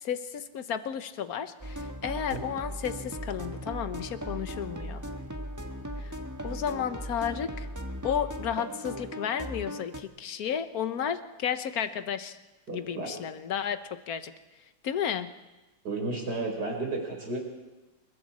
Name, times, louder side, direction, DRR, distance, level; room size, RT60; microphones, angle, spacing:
voice 1, 0.0-5.0 6.0-6.1 6.4-7.7 8.0-12.4 12.7-13.8 14.1-14.3 14.8-15.3, left 8 dB, 55° left, 10 dB, 1.4 m, -32 dB
sound 1, 1.6-10.0, equal, 10° right, 1.0 m, -38 dB
voice 2, 12.7-13.1 15.8-17.4, right 3 dB, 60° right, 1 dB, 5.0 m, -32 dB
28.5 x 22.0 x 4.3 m, 1.1 s
omnidirectional pair, 2.0 m